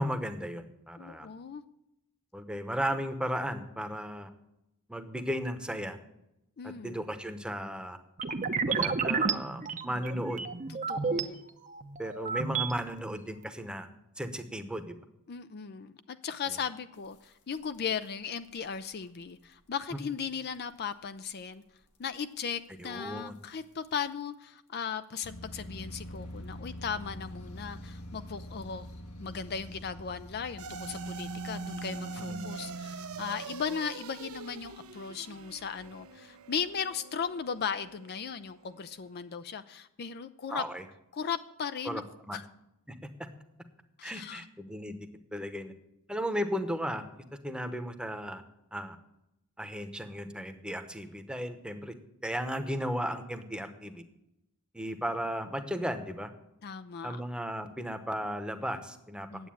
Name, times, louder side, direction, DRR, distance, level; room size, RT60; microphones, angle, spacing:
voice 1, 0.0-1.3 2.3-4.3 4.9-6.0 6.6-8.0 8.7-10.4 12.0-13.9 14.2-14.9 22.8-23.3 32.2-32.4 40.5-40.8 41.8-42.4 42.9-43.0 44.0-45.0 45.3-45.7 46.1-47.0 47.4-48.4 48.7-49.0 49.6-51.9 52.2-54.0 54.7-56.3 57.0-59.5, equal, 5° right, 7 dB, 1.0 m, -35 dB
voice 2, 1.0-1.6 6.6-7.0 10.7-11.4 15.3-21.6 22.0-28.9 29.2-40.6 41.1-42.0 42.3-42.5 44.0-44.4 56.6-57.2 59.3-59.5, left 6 dB, 45° left, 11 dB, 0.5 m, -37 dB
sound 1, 8.2-11.2 11.7-12.7, right 5 dB, 35° right, 0.7 m, -31 dB
sound 2, 16.9-18.1 18.4-18.7 19.0-19.2 19.5-19.6 19.8-19.9 20.5-20.6 21.4-21.5 21.9-22.0 23.3-23.4 24.1-24.2 25.2-33.5, equal, 85° left, 2.0 m, -46 dB
sound 3, 30.6-39.1, right 4 dB, 70° right, 0.8 m, -42 dB
9.6 x 8.2 x 8.6 m, 0.87 s
head